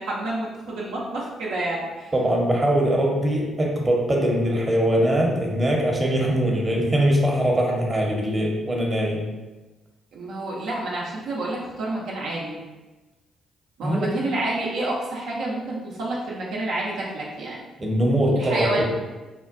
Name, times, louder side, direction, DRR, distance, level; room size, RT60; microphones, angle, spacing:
voice 1, 0.0-2.1 10.1-12.6 13.8-17.6 18.4-18.8, right 2 dB, 75° right, -4 dB, 0.5 m, -29 dB
voice 2, 2.1-9.3 13.8-14.1 17.8-18.9, equal, 30° right, -1 dB, 0.8 m, -22 dB
3.6 x 2.2 x 2.5 m, 1.2 s
hypercardioid pair, 50°, 0 cm